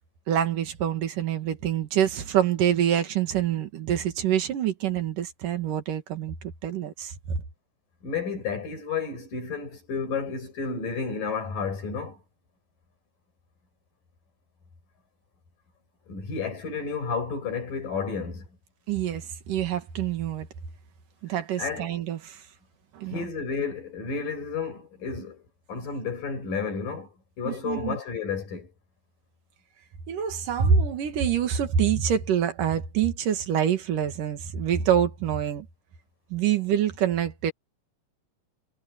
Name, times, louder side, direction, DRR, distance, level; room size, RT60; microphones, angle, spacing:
voice 1, 0.3-6.4 6.6-7.4 18.9-20.5 21.2-22.4 22.9-23.3 27.5-28.0 30.1-35.7 36.3-37.5, right 9 dB, 75° right, 3.5 m, -26 dB
voice 2, 8.0-12.2 16.1-18.5 21.6-21.9 23.1-25.4 25.7-28.7, left 5 dB, 85° left, 7.7 m, -31 dB
omnidirectional pair, 3.8 m